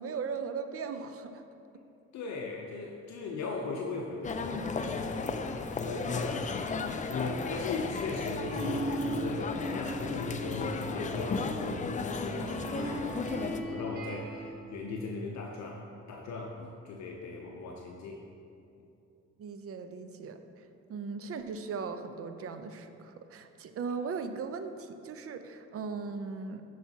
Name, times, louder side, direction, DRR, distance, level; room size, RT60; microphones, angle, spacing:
voice 1, 0.0-1.4 19.4-20.4 20.9-26.6, right 5 dB, 50° right, 8 dB, 0.5 m, -38 dB
voice 2, 2.1-6.6 7.1-18.2, left 3 dB, 65° left, 0 dB, 0.6 m, -38 dB
sound 1, 4.2-13.6, left 4 dB, 25° left, 0.4 m, -35 dB
sound 2, 8.5-14.5, right 1 dB, 85° right, 1.2 m, -38 dB
11.5 x 4.8 x 2.8 m, 2.6 s
cardioid pair, 90°, 30 cm